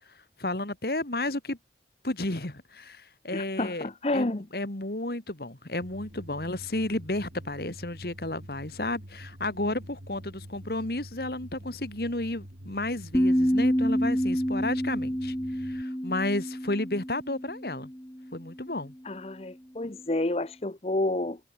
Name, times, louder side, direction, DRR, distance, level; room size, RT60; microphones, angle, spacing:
voice 1, 0.4-1.6 2.0-17.9 18.3-18.9, left 2 dB, 60° left, 2.2 m, -32 dB
voice 2, 3.3-4.5 19.0-21.4, left 2 dB, 35° left, 0.8 m, -29 dB
sound 1, 5.8-15.8, equal, 60° right, 7.4 m, -46 dB
sound 2, 13.1-18.3, equal, 15° left, 2.7 m, -28 dB
head